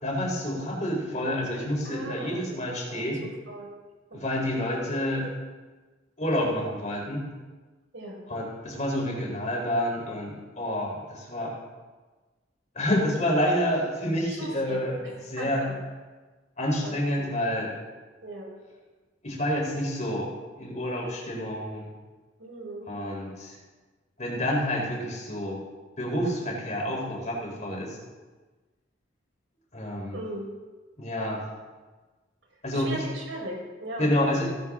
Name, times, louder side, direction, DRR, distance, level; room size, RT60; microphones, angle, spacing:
voice 1, 0.0-3.2 4.1-5.3 6.2-7.2 8.3-11.6 12.7-15.0 15.3-15.7 16.6-17.7 19.2-20.3 20.6-21.9 22.9-23.6 24.2-25.6 26.0-28.0 29.7-30.2 31.0-31.4 32.6-33.0 34.0-34.5, left 1 dB, 40° left, -2 dB, 4.0 m, -28 dB
voice 2, 1.9-2.4 2.9-3.0 3.5-3.7 4.1-4.5 7.9-8.2 14.4-14.8 15.4-15.5 16.8-17.2 18.2-18.5 22.4-22.9 30.1-30.4 32.7-34.1, right 1 dB, 80° right, -2 dB, 5.1 m, -37 dB
17.0 x 12.0 x 3.7 m, 1.3 s
head